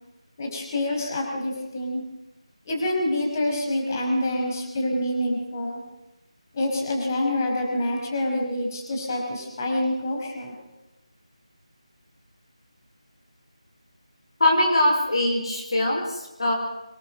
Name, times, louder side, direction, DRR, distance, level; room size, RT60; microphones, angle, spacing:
voice 1, 0.4-2.0 2.7-5.8 6.5-10.5, left 1 dB, 30° left, 1 dB, 5.3 m, -26 dB
voice 2, 14.4-16.5, left 1 dB, 50° left, 1 dB, 4.7 m, -22 dB
25.0 x 19.5 x 6.3 m, 0.98 s
figure-of-eight pair, 160°, 3 cm